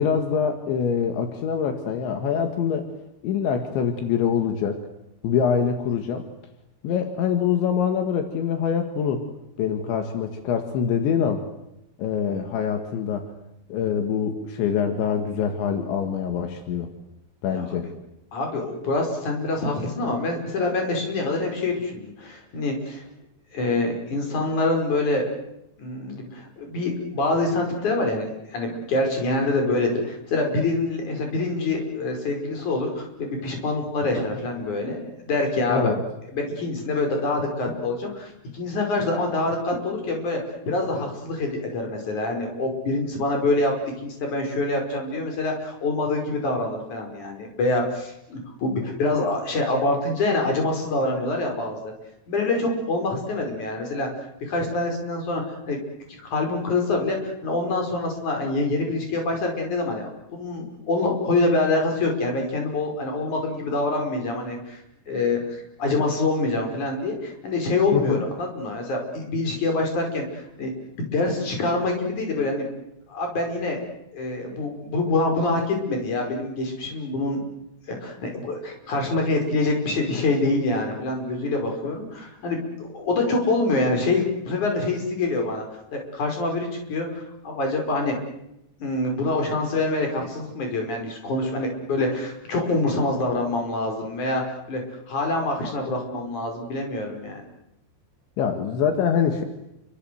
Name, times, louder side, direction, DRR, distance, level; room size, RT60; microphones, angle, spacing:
voice 1, 0.0-2.9 3.2-4.8 5.2-6.3 6.8-9.2 9.6-11.4 12.0-13.3 13.7-16.9 17.4-17.9 35.7-36.0 67.9-68.2 98.4-99.4, left 7 dB, 80° left, 6 dB, 4.2 m, -24 dB
voice 2, 18.3-23.0 23.5-25.3 25.8-35.9 36.3-40.4 40.7-43.7 44.0-51.9 52.3-54.1 54.4-55.8 56.3-64.8 65.1-70.7 71.0-72.7 73.1-73.8 74.1-77.4 77.9-85.6 85.9-88.2 88.8-97.4, left 2 dB, 40° left, 2 dB, 6.5 m, -25 dB
29.0 x 25.0 x 8.0 m, 0.85 s
omnidirectional pair, 5.2 m